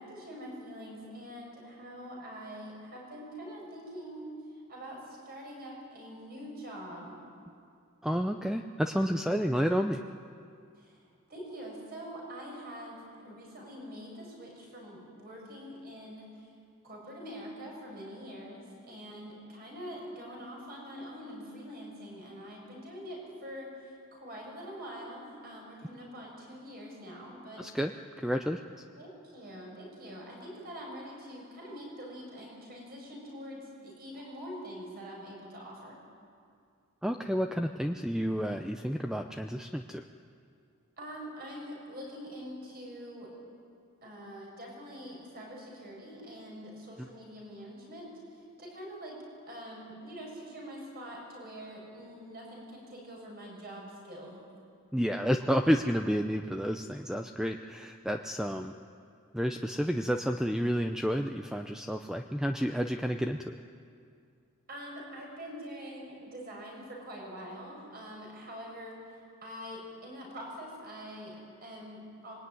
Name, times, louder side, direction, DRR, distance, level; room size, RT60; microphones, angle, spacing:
voice 1, 0.0-4.3 4.7-7.2 10.7-11.0 11.3-16.5 16.8-27.6 29.0-36.0 41.0-43.3 44.0-49.2 49.5-54.4 64.7-69.0 69.4-72.4, equal, 45° right, -2 dB, 7.7 m, -44 dB
voice 2, 8.0-10.0 27.6-27.9 28.2-28.6 37.0-40.0 54.9-58.7 59.3-63.6, equal, 5° right, 5 dB, 0.6 m, -30 dB
25.5 x 22.0 x 9.7 m, 2.4 s
head